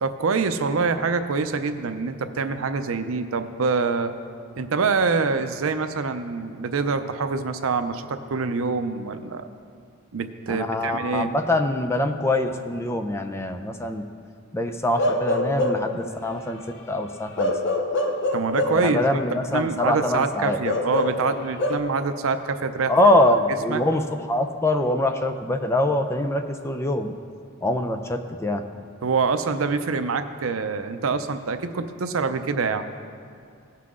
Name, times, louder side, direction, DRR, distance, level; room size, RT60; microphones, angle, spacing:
voice 1, 0.0-4.1 4.6-9.5 10.1-11.3 18.3-22.9 23.7-23.8 29.0-32.8, right 4 dB, 85° right, 9 dB, 0.6 m, -25 dB
voice 2, 10.5-14.1 14.5-16.6 16.9-17.5 18.8-20.6 22.9-27.1 27.6-28.6, left 1 dB, 15° left, 5 dB, 0.5 m, -23 dB
Bark / Livestock farm animals working animals, 15.0-16.0 17.4-18.9 20.6-21.8, left 1 dB, 60° left, 0.8 m, -24 dB
17.5 x 5.8 x 3.7 m, 2.3 s
head